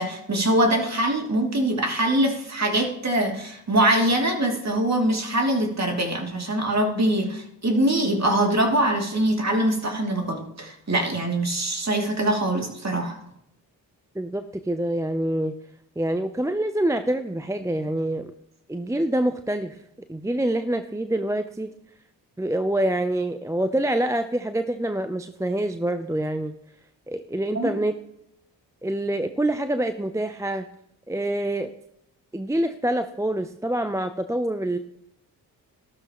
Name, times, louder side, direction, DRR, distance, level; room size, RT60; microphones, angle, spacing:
voice 1, 0.0-13.2 27.5-27.8, right 1 dB, 35° right, 2 dB, 2.8 m, -23 dB
voice 2, 14.2-15.6 16.0-18.3 18.7-19.8 20.1-21.7 22.4-26.5 27.1-28.0 28.8-30.7 31.1-31.7 32.3-34.8, right 1 dB, 5° right, 9 dB, 0.6 m, -26 dB
13.5 x 12.5 x 3.1 m, 0.77 s
hypercardioid pair, 45°, 47 cm